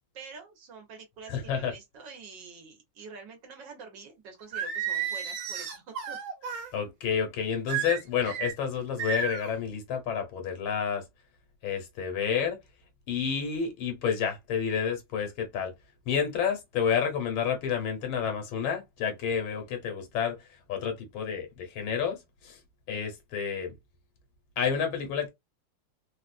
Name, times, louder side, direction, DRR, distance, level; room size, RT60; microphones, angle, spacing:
voice 1, 0.1-6.2, right 5 dB, 65° right, 1.7 m, -47 dB
voice 2, 1.3-1.7 6.7-11.0 11.6-12.6 13.1-15.7 16.1-20.4 20.7-22.6 22.9-23.8 24.6-25.3, left 7 dB, 80° left, 1.9 m, -30 dB
Singing, 4.5-6.7 7.7-8.5 9.0-9.5, right 7 dB, 90° right, 1.8 m, -32 dB
4.0 x 2.4 x 2.5 m
omnidirectional pair, 2.2 m